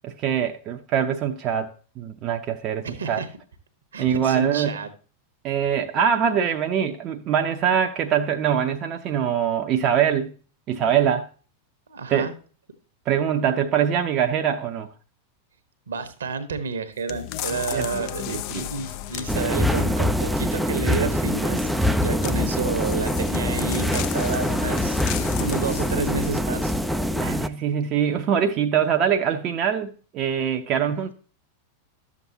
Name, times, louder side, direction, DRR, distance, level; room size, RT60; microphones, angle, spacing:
voice 1, 0.0-3.2 4.0-4.8 5.4-10.3 10.7-11.3 12.1-12.3 13.1-14.9 17.7-18.7 27.2-31.1, right 8 dB, 35° right, 0.7 m, -23 dB
voice 2, 2.8-3.3 3.9-4.9 11.9-12.3 15.9-26.7, right 5 dB, 70° right, 1.2 m, -30 dB
sound 1, 17.1-20.1 22.1-26.3 26.8-26.9, left 13 dB, 45° left, 0.6 m, -34 dB
sound 2, 19.3-27.5, equal, 5° right, 0.5 m, -24 dB
12.5 x 7.3 x 2.8 m
figure-of-eight pair, 90°, 0 cm